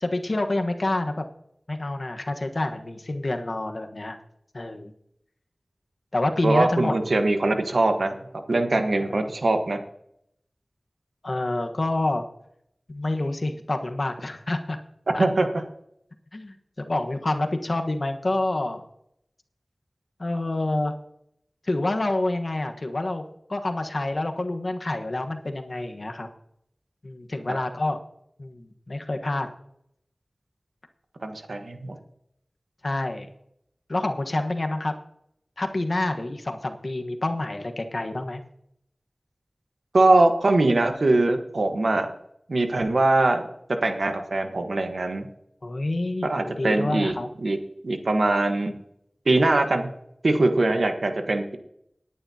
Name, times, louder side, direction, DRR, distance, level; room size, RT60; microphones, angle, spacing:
voice 1, 0.0-1.1 1.7-4.2 4.5-4.9 6.1-7.0 9.1-9.2 11.2-12.3 12.9-14.8 15.1-15.3 16.3-18.8 20.2-20.9 21.6-23.2 23.5-26.3 27.0-28.0 28.4-29.5 32.8-33.3 33.9-34.9 35.6-38.4 45.6-47.3, left 2 dB, 60° left, 5 dB, 1.3 m, -27 dB
voice 2, 6.4-8.1 8.5-9.8 15.2-15.5 27.5-27.6 31.2-32.0 39.9-42.1 42.5-45.3 46.2-47.1 47.4-47.6 47.8-48.7 49.3-49.9 50.2-51.6, right 2 dB, 90° right, 5 dB, 1.3 m, -22 dB
19.0 x 10.0 x 2.9 m, 0.74 s
wide cardioid pair, 50°, 0 cm